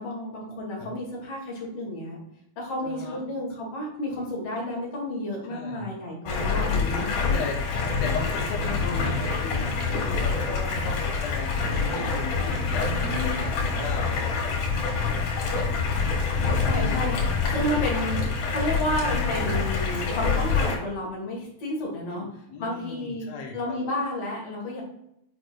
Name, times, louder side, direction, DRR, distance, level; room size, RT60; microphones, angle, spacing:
voice 1, 0.0-2.2 2.6-7.1 16.3-17.1 17.5-22.2 22.6-24.8, left 1 dB, 55° left, -3 dB, 2.8 m, -31 dB
voice 2, 2.8-3.2 5.5-5.9 7.3-14.6 16.6-17.1 17.6-17.8 22.1-23.8, left 4 dB, 70° left, 0 dB, 1.8 m, -36 dB
Stream, 6.3-20.8, left 4 dB, 90° left, 3.2 m, -26 dB
8.2 x 4.9 x 2.6 m, 0.77 s
omnidirectional pair, 3.6 m